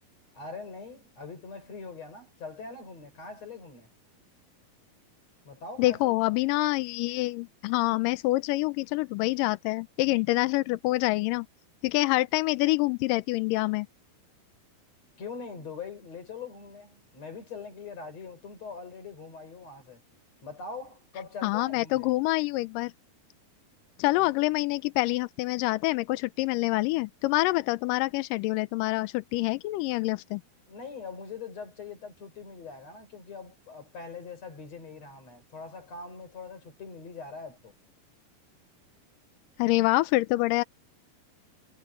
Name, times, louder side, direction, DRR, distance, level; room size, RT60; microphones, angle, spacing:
voice 1, 0.3-3.9 5.5-6.2 15.2-20.0 20.4-22.1 24.2-24.3 30.7-37.7, left 4 dB, 40° left, 5.3 m, -42 dB
voice 2, 5.8-11.5 11.8-13.9 21.4-22.9 24.0-30.4 39.6-40.6, left 20 dB, 90° left, 1.9 m, -26 dB
omnidirectional pair, 4.5 m